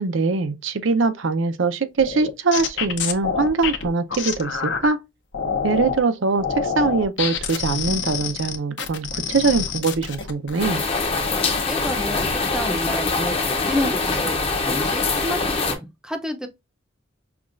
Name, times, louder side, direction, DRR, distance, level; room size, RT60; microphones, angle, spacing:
voice 1, 0.0-5.0 5.6-10.8, right 4 dB, 80° right, 0.6 m, -22 dB
sound 1, 2.0-4.9 5.3-6.0 6.4-10.6 11.0-11.6 12.0-12.4, left 6 dB, 65° left, 0.7 m, -27 dB
sound 2, 10.6-15.8, left 3 dB, 30° left, 0.7 m, -23 dB
voice 2, 11.7-15.4 15.7-16.5, left 1 dB, 5° right, 0.5 m, -29 dB
5.8 x 2.3 x 2.4 m
head